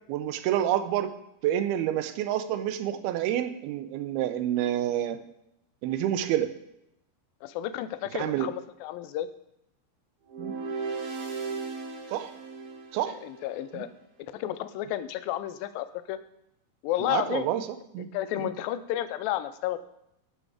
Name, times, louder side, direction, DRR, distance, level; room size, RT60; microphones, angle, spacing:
voice 1, 0.1-1.1 1.4-5.2 5.8-6.5 8.1-8.5 10.4-10.6 12.1-12.3 12.9-13.2 13.7-13.9 17.0-17.7 17.9-18.1, right 11 dB, 85° right, 11 dB, 2.6 m, -28 dB
voice 2, 7.4-9.3 13.1-13.9 14.2-16.2 16.8-17.5 18.1-19.8, left 13 dB, 80° left, 12 dB, 2.2 m, -32 dB
sound 1, 10.3-13.5, right 4 dB, 55° right, 1.7 m, -36 dB
13.0 x 5.2 x 4.9 m, 0.81 s
omnidirectional pair, 4.4 m